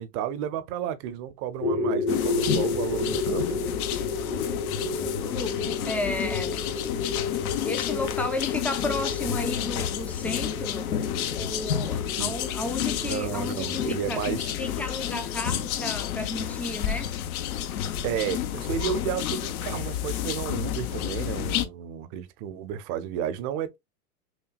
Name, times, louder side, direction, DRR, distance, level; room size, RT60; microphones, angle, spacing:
voice 1, 0.0-3.6 12.2-12.4 13.0-14.5 18.0-23.8, right 9 dB, 40° right, 0.7 m, -32 dB
sound 1, 1.6-15.8, left 3 dB, 90° left, 2.1 m, -32 dB
sound 2, 2.1-21.7, left 10 dB, 70° left, 0.8 m, -30 dB
voice 2, 5.2-6.7 7.6-10.9 11.4-14.2 14.6-17.1, left 2 dB, 5° left, 0.4 m, -33 dB
6.0 x 2.2 x 2.3 m
hypercardioid pair, 115°, 45 cm